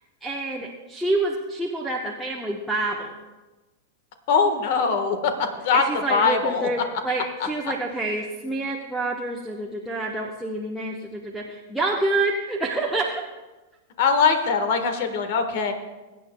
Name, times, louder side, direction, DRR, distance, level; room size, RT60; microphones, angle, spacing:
voice 1, 0.2-3.1 5.7-13.2, right 2 dB, ahead, -4 dB, 1.1 m, -27 dB
voice 2, 4.3-5.8 6.1-6.7 14.0-15.7, left 5 dB, 55° left, 7 dB, 1.4 m, -22 dB
22.0 x 9.2 x 2.3 m, 1.2 s
figure-of-eight pair, 95°, 0 cm